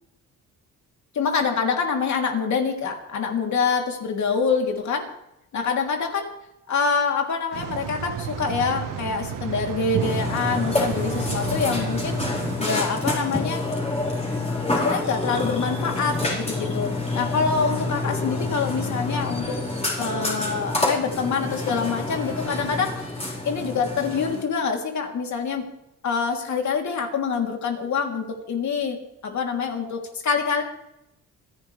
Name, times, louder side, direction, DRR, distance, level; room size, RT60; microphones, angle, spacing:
voice 1, 1.1-5.1 5.5-6.3 6.7-12.2 12.6-13.7 14.7-19.6 20.0-23.2 23.4-25.7 26.0-30.6, left 5 dB, 60° left, 2 dB, 3.4 m, -26 dB
sound 1, 7.5-12.6, right 8 dB, 85° right, 1.5 m, -32 dB
Burping eructation, 10.0-24.4, left 2 dB, 20° left, 4.7 m, -28 dB
27.5 x 11.0 x 3.5 m, 0.84 s
cardioid pair, 100°, 32 cm